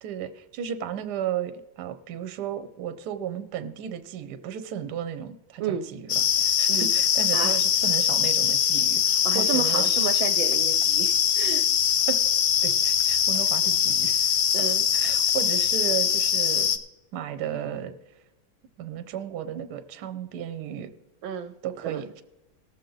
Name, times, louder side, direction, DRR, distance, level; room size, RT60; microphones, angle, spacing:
voice 1, 0.0-10.1 12.1-12.2 12.6-14.4 14.9-16.7 17.1-17.9 18.8-20.9 21.6-22.2, right 9 dB, 65° right, 11 dB, 1.2 m, -34 dB
sound 1, 6.1-16.8, left 8 dB, 65° left, 0.9 m, -22 dB
voice 2, 9.2-11.7 14.5-14.9 21.2-21.5 21.8-22.0, right 8 dB, 80° right, 10 dB, 1.3 m, -31 dB
18.5 x 7.3 x 3.9 m, 1.0 s
omnidirectional pair, 2.3 m